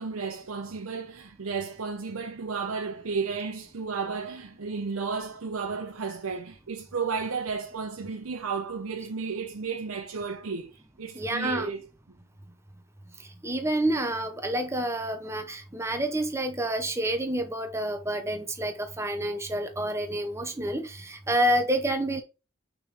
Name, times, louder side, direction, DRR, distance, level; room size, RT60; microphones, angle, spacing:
voice 1, 0.0-11.8, right 5 dB, 90° right, 0.7 m, -33 dB
voice 2, 11.1-11.7 13.4-22.2, right 1 dB, 15° right, 0.7 m, -28 dB
6.1 x 3.7 x 4.8 m
head